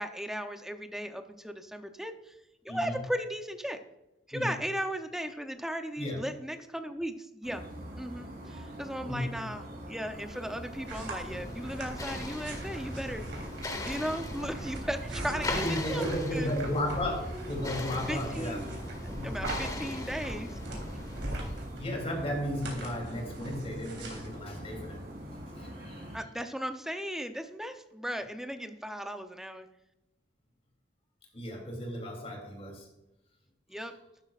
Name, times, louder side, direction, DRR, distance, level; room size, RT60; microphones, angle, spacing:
voice 1, 0.0-2.3 2.6-3.8 4.3-7.7 8.0-13.3 13.8-16.5 18.1-18.7 19.0-20.8 26.1-29.7 33.7-33.9, equal, 5° right, 6 dB, 0.7 m, -36 dB
sound 1, 7.4-26.2, equal, 55° right, 3.3 m, -43 dB
voice 2, 9.0-9.4 15.5-18.6 19.1-19.3 21.8-25.0 25.5-26.0 31.3-32.9, equal, 35° left, 2 dB, 3.2 m, -34 dB
sound 2, 10.2-25.4, right 1 dB, 85° right, 3.4 m, -43 dB
sound 3, 10.3-21.8, left 1 dB, 20° left, 1.2 m, -39 dB
12.5 x 10.5 x 2.5 m, 0.90 s
head